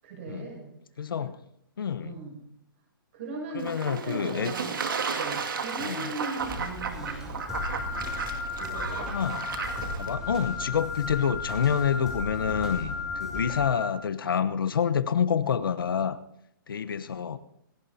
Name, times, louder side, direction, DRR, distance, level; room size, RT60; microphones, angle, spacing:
voice 1, 0.0-0.7 2.0-2.4 3.1-4.8 5.1-7.4 8.5-9.2, right 3 dB, 35° right, -1 dB, 7.0 m, -38 dB
voice 2, 1.0-1.4 1.8-2.1 3.6-4.5 5.8-6.1 9.1-9.4 10.0-16.2 16.7-17.4, left 7 dB, 80° left, 11 dB, 1.1 m, -27 dB
Fowl / Bird / Water, 3.6-10.1, right 5 dB, 70° right, 2.3 m, -34 dB
sound 1, 6.4-13.7, equal, 5° right, 3.0 m, -38 dB
Wind instrument woodwind instrument, 7.5-13.9, left 4 dB, 50° left, 5.2 m, -35 dB
27.5 x 17.0 x 2.9 m, 0.80 s
hypercardioid pair, 170°, 12 cm